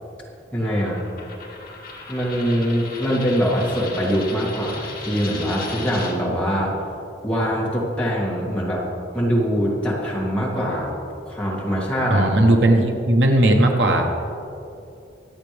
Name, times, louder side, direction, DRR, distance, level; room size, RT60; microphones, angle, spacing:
voice 1, 0.5-1.0 2.1-6.8 7.2-8.9 9.1-10.9 11.3-12.3, equal, 5° left, -6 dB, 2.6 m, -23 dB
Coin (dropping), 0.6-6.1, left 4 dB, 50° left, 2.2 m, -37 dB
voice 2, 12.1-14.1, right 1 dB, 70° right, 2 dB, 1.3 m, -17 dB
25.0 x 8.3 x 3.5 m, 2.7 s
head